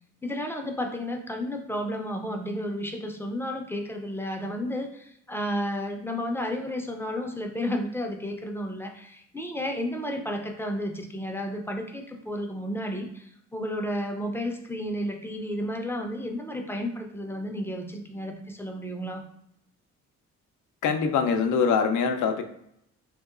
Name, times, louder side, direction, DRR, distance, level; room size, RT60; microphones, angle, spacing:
voice 1, 0.2-19.2, equal, 10° left, 3 dB, 0.4 m, -32 dB
voice 2, 20.8-22.4, left 6 dB, 80° left, 6 dB, 0.5 m, -23 dB
3.0 x 2.8 x 2.4 m, 0.73 s
cardioid pair, 90°, 30 cm